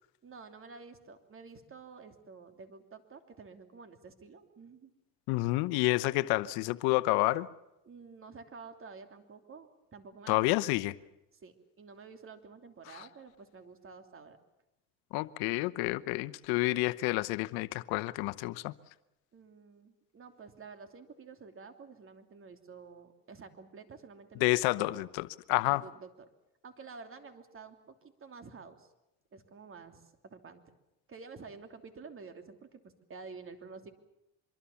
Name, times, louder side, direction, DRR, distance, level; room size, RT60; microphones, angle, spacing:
voice 1, 0.2-4.9 7.8-10.5 11.3-14.4 19.3-25.1 25.6-26.1 26.6-28.9 29.3-30.6 31.1-33.9, right 4 dB, 35° right, 3.0 m, -50 dB
voice 2, 5.3-7.5 10.3-10.9 15.1-18.7 24.4-25.8, left 20 dB, 75° left, 0.9 m, -29 dB
24.5 x 23.0 x 7.2 m
supercardioid pair, 95°, 37 cm